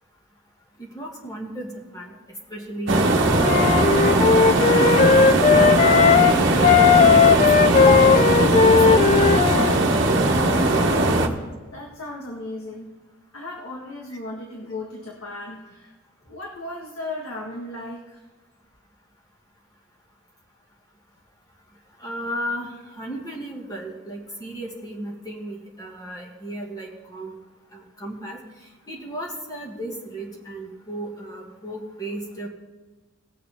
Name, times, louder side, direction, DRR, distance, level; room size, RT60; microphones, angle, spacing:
voice 1, 0.8-2.1 2.5-4.0 4.7-9.0 22.0-27.3 27.7-28.4 28.9-32.5, right 1 dB, 15° left, -1 dB, 1.9 m, -34 dB
sound 1, 2.9-11.3, right 2 dB, 55° right, 1.2 m, -19 dB
Wind instrument woodwind instrument, 3.4-6.3 6.6-9.8, left 6 dB, 30° left, 0.3 m, -16 dB
voice 2, 11.1-12.9 13.3-15.9 16.3-18.2, left 2 dB, 75° left, -2 dB, 1.6 m, -36 dB
18.5 x 6.6 x 3.6 m, 1.3 s
head